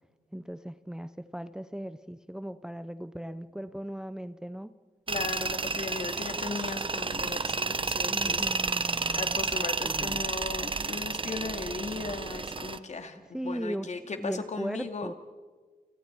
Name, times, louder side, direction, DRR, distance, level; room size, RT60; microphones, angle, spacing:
voice 1, 0.3-4.7 8.0-9.4 9.8-10.3 13.3-15.1, right 1 dB, 5° right, 12 dB, 0.7 m, -38 dB
voice 2, 5.1-15.1, left 4 dB, 50° left, 6 dB, 2.4 m, -37 dB
Tools, 5.1-12.8, right 4 dB, 35° right, 0.9 m, -31 dB
30.0 x 29.0 x 4.6 m, 1.4 s
wide cardioid pair, 105°, 15 cm